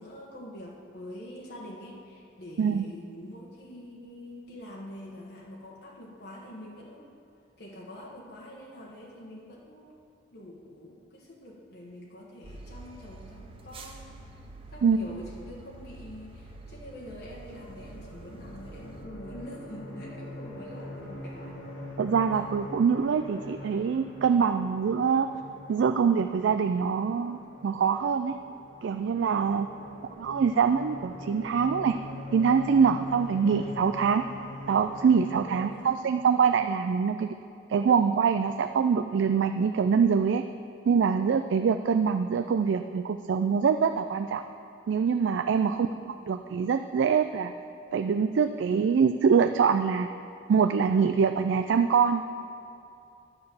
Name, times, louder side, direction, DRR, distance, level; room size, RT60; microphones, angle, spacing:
voice 1, 0.0-7.1 7.6-9.9 10.3-14.1 14.7-21.6 29.5-30.1 35.4-36.0 45.6-46.0, left 1 dB, 55° left, -3 dB, 1.2 m, -45 dB
sound 1, 12.4-19.1, right 2 dB, 30° right, 0.7 m, -47 dB
sound 2, 16.5-35.9, left 1 dB, 85° left, 2.8 m, -44 dB
voice 2, 22.0-25.3 25.7-28.4 28.8-29.7 30.2-31.9 32.3-34.2 34.7-37.3 37.7-40.4 40.9-44.4 44.9-45.9 46.3-47.5 47.9-50.1 50.5-52.2, right 6 dB, 70° right, 8 dB, 0.3 m, -24 dB
9.9 x 6.6 x 6.9 m, 2.6 s
head